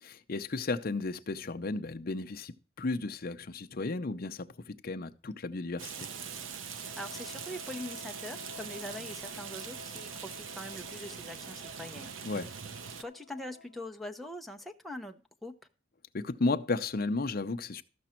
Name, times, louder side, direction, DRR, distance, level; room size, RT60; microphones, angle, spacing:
voice 1, 0.0-6.1 12.2-12.5 16.1-17.8, left 3 dB, 50° left, 0.6 m, -34 dB
Rain, 5.8-13.0, right 7 dB, 85° right, 0.7 m, -42 dB
voice 2, 6.7-12.1 13.0-15.5, left 1 dB, ahead, 0.7 m, -43 dB
Wind instrument woodwind instrument, 6.8-14.1, left 5 dB, 80° left, 1.2 m, -52 dB
13.5 x 6.0 x 4.3 m
head